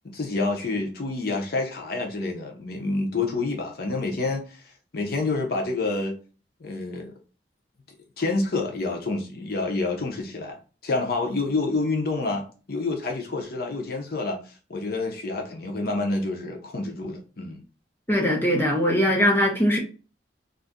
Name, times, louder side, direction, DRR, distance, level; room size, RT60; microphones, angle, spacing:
voice 1, 0.0-6.2 6.6-7.1 8.2-17.6, left 3 dB, 55° left, 0.6 m, -28 dB
voice 2, 18.1-19.8, equal, 10° left, 0.8 m, -21 dB
2.5 x 2.5 x 3.5 m
head